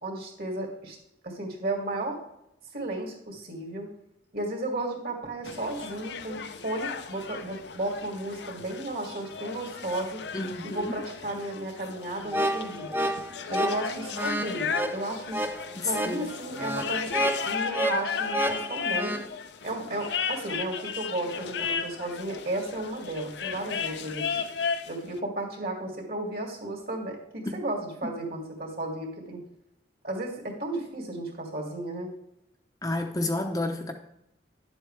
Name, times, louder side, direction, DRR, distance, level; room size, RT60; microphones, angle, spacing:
voice 1, 0.0-1.0 1.2-2.2 2.7-3.9 4.3-10.2 10.6-13.0 13.5-15.5 15.8-19.2 19.6-24.4 24.9-29.4 30.0-32.1, right 1 dB, 55° right, 1 dB, 2.3 m, -34 dB
sound 1, 5.4-25.0, left 6 dB, 70° left, 0.6 m, -35 dB
voice 2, 10.3-11.0 15.8-16.3 27.5-27.6 32.8-33.9, left 2 dB, 20° left, 3 dB, 0.7 m, -30 dB
sound 2, 12.3-19.2, right 1 dB, 10° right, 0.4 m, -30 dB
11.0 x 7.8 x 3.3 m, 0.83 s
head